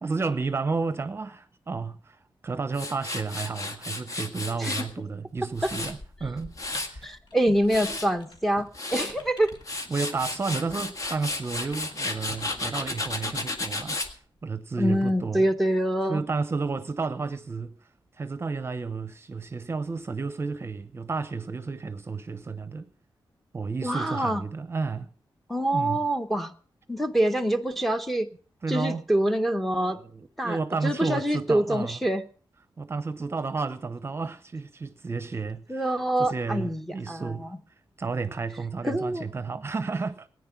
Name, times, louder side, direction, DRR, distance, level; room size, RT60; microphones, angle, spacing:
voice 1, 0.0-7.1 9.9-15.5 16.1-17.7 18.2-22.9 23.5-25.1 25.7-26.0 28.6-29.0 29.7-32.0 32.8-37.5 38.0-40.3, right 4 dB, 30° right, 0.8 m, -32 dB
Tools, 2.7-4.9 5.4-7.0 7.5-8.1 8.6-9.1 9.5-14.1, left 2 dB, 40° left, 1.7 m, -33 dB
sound 1, 6.7-8.6 8.9-10.6 11.0-12.6, left 2 dB, 70° left, 2.9 m, -48 dB
voice 2, 7.0-9.5 14.8-16.2 23.8-24.4 25.5-26.5 26.9-28.3 28.7-30.0 30.4-32.2 35.7-37.5 38.8-39.2, right 1 dB, ahead, 0.9 m, -25 dB
18.0 x 9.7 x 5.9 m
wide cardioid pair, 170°, 9 cm